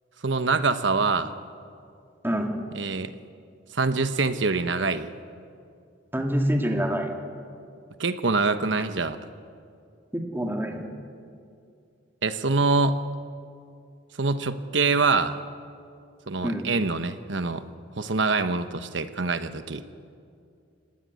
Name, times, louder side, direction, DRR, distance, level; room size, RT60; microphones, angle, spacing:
voice 1, 0.2-1.3 2.7-3.1 3.7-5.1 8.0-9.2 12.2-13.0 14.2-15.4 16.3-17.6 17.9-19.8, right 3 dB, 70° right, 10 dB, 1.2 m, -25 dB
voice 2, 2.2-2.6 6.1-7.1 10.1-10.9 16.4-16.7, equal, 10° right, 2 dB, 2.4 m, -26 dB
26.0 x 18.0 x 9.5 m, 2.4 s
head